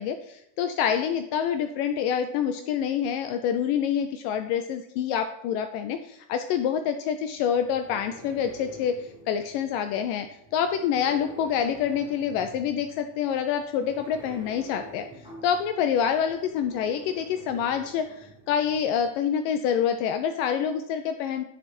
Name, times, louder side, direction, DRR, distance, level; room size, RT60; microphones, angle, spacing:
voice 1, 0.0-9.0 9.3-10.3 10.5-15.1 15.4-21.4, left 8 dB, 80° left, 7 dB, 2.0 m, -27 dB
sound 1, 7.3-19.1, equal, ahead, 1.7 m, -48 dB
10.5 x 6.8 x 4.3 m, 0.79 s
omnidirectional pair, 4.2 m